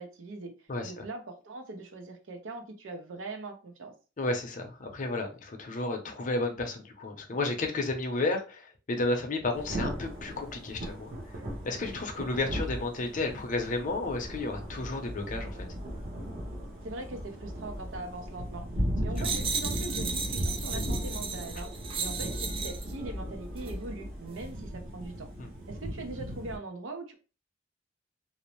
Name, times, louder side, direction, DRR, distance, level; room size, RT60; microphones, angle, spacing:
voice 1, 0.0-0.5 0.8-3.9 16.8-18.7 19.0-21.7 22.0-25.3 25.7-27.1, right 2 dB, 85° right, 0.6 m, -41 dB
voice 2, 0.7-1.0 4.2-11.1 11.6-15.7 25.4-25.5, left 2 dB, 40° left, 0.6 m, -32 dB
Thunder / Rain, 9.5-26.6, equal, 50° right, 0.8 m, -37 dB
sound 1, 19.2-22.9 23.6-23.7, right 5 dB, 30° right, 0.3 m, -35 dB
2.6 x 2.0 x 3.0 m
head